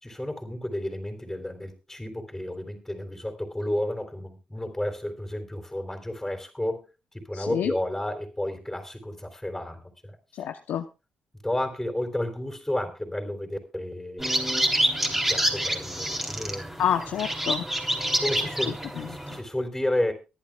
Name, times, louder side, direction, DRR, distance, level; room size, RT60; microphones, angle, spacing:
voice 1, 0.0-6.9 7.1-10.2 11.4-14.3 15.3-16.7 18.2-20.1, left 1 dB, 10° left, 3 dB, 3.8 m, -31 dB
voice 2, 7.3-7.7 10.4-10.9 16.8-17.7 19.0-19.4, left 9 dB, 80° left, 6 dB, 0.9 m, -28 dB
sound 1, 14.2-19.4, right 1 dB, 10° right, 3.6 m, -27 dB
24.0 x 10.5 x 2.4 m, 0.29 s
supercardioid pair, 55°, 3 cm